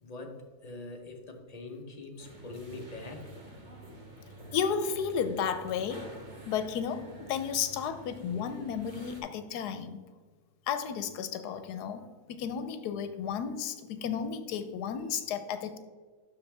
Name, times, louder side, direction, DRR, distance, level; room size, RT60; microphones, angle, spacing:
voice 1, 0.0-3.3, left 2 dB, 35° left, 3 dB, 0.7 m, -43 dB
sound 1, 2.2-9.2, right 1 dB, 30° right, 1.3 m, -48 dB
voice 2, 4.5-6.1 6.5-10.0 10.7-12.0 12.3-15.8, left 7 dB, 85° left, 10 dB, 1.2 m, -33 dB
12.0 x 4.0 x 3.3 m, 1.5 s
omnidirectional pair, 1.7 m